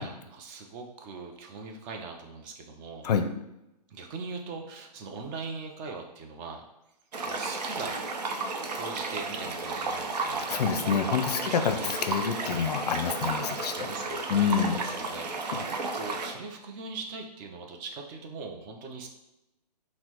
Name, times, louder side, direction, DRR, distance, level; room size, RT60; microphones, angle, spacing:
voice 1, 0.0-3.1 3.9-6.6 7.3-8.0 8.7-10.5 11.4-11.9 13.7-19.1, right 4 dB, 20° right, 2 dB, 0.4 m, -41 dB
sound 1, 7.1-16.3, right 3 dB, 75° right, 0.6 m, -33 dB
voice 2, 10.5-13.9 14.3-14.8 15.5-15.7, left 7 dB, 70° left, 8 dB, 0.4 m, -27 dB
5.8 x 2.1 x 2.8 m, 0.92 s
hypercardioid pair, 130°, 21 cm